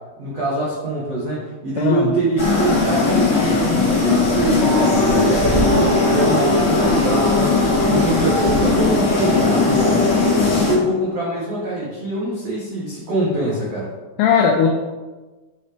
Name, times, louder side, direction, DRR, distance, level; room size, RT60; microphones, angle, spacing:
voice 1, 0.2-10.0 10.6-13.9, right 2 dB, 80° right, -7 dB, 1.4 m, -24 dB
voice 2, 1.8-2.2 14.2-14.7, left 6 dB, 85° left, 2 dB, 2.3 m, -17 dB
sound 1, 2.4-10.7, left 3 dB, 45° left, 1.5 m, -17 dB
8.7 x 4.1 x 5.0 m, 1.2 s
omnidirectional pair, 5.4 m